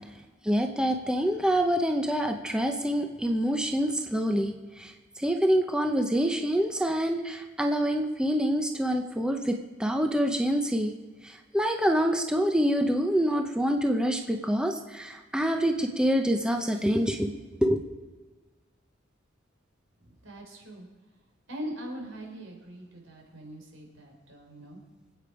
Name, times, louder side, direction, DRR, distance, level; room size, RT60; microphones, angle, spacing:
voice 1, 0.4-10.9 11.2-17.3 17.6-17.8, equal, 5° right, 4 dB, 0.7 m, -26 dB
voice 2, 20.0-20.9 21.5-24.8, equal, 80° right, 1 dB, 4.3 m, -41 dB
25.5 x 8.6 x 4.8 m, 1.3 s
head